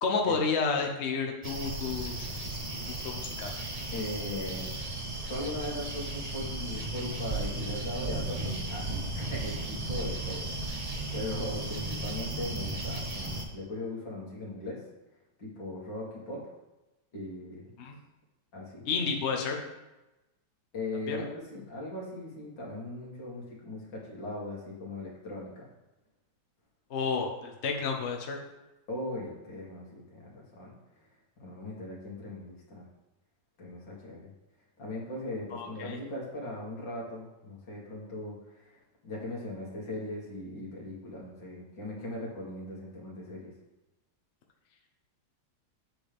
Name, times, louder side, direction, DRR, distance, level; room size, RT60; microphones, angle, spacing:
voice 1, 0.0-2.3 3.0-3.5 17.8-17.9 18.9-19.6 21.1-21.2 26.9-28.4 35.5-36.0, left 5 dB, 45° left, 1 dB, 0.9 m, -30 dB
sound 1, 1.4-13.4, right 2 dB, 35° right, 0.6 m, -35 dB
voice 2, 3.9-4.8 5.3-14.8 15.4-16.5 17.1-17.7 18.5-18.9 20.7-25.7 28.9-30.7 31.4-32.9 33.6-34.3 34.8-43.5, left 1 dB, 70° left, -4 dB, 2.8 m, -39 dB
7.8 x 7.7 x 3.5 m, 1.0 s
omnidirectional pair, 2.1 m